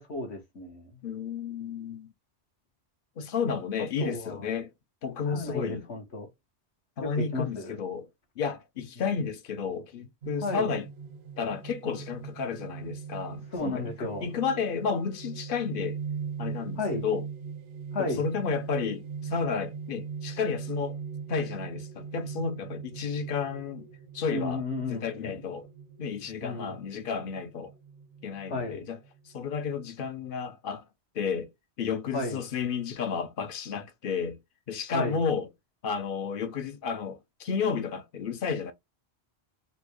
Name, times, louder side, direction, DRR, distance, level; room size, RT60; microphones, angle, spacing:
voice 1, 0.0-0.9 3.8-4.5 5.3-6.3 7.0-7.8 10.4-10.7 13.5-14.3 16.8-17.0 17.9-18.3 24.3-25.0 26.4-26.8 28.5-28.9 32.1-32.4 34.9-35.2, left 2 dB, 75° left, 1.4 m, -33 dB
voice 2, 1.0-2.1 3.2-4.7 5.0-5.9 7.0-8.1 8.4-10.9 11.4-16.0 16.4-17.3 18.0-21.0 21.3-23.9 24.1-24.6 24.9-25.7 26.0-27.7 28.2-29.0 29.3-30.9 31.1-31.5 31.8-34.4 34.7-35.5 35.8-38.7, left 6 dB, 60° left, 0.7 m, -32 dB
sound 1, 10.2-29.4, right 6 dB, 75° right, 0.8 m, -41 dB
4.1 x 2.2 x 2.9 m
omnidirectional pair, 1.1 m